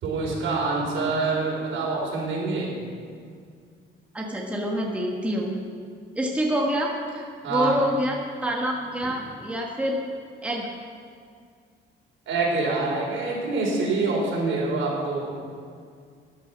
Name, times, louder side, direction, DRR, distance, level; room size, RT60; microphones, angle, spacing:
voice 1, 0.0-2.7 7.4-7.7 12.3-15.3, right 3 dB, 75° right, -3 dB, 4.7 m, -26 dB
voice 2, 4.1-5.6 6.1-10.0 10.4-10.7, equal, 5° right, -1 dB, 1.3 m, -27 dB
14.5 x 10.5 x 6.1 m, 2.1 s
cardioid pair, 160°, 20 cm